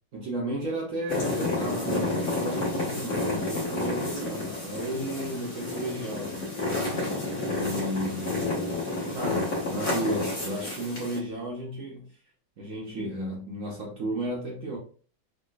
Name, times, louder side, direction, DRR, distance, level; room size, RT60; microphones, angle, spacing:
voice 1, 0.1-6.6 7.5-8.7 9.1-12.1 12.6-14.8, right 1 dB, 60° right, 0.8 m, -34 dB
sound 1, 1.1-11.2, left 2 dB, 40° left, 1.2 m, -30 dB
3.6 x 2.2 x 2.3 m
omnidirectional pair, 2.1 m